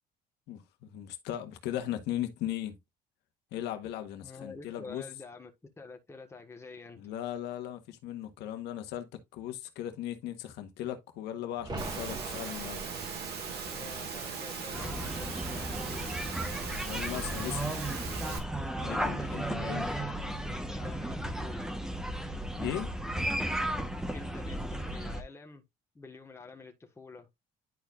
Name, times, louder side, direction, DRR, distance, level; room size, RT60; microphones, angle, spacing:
voice 1, 0.5-2.8 3.5-5.0 7.0-12.9 16.8-17.7 18.8-19.9 22.5-22.9, left 12 dB, 85° left, 1.3 m, -37 dB
voice 2, 4.2-5.5 5.8-7.0 13.7-16.1 18.9-21.7 24.1-25.6 25.9-27.3, left 4 dB, 15° left, 1.5 m, -48 dB
sound 1, 11.6-17.1 17.4-17.5, right 2 dB, 25° right, 1.6 m, -45 dB
Engine / Mechanisms, 11.8-18.4, right 6 dB, 70° right, 2.0 m, -39 dB
sound 2, 14.7-25.2, right 1 dB, 5° right, 1.1 m, -34 dB
10.5 x 4.5 x 2.5 m
cardioid pair, 110°, 17 cm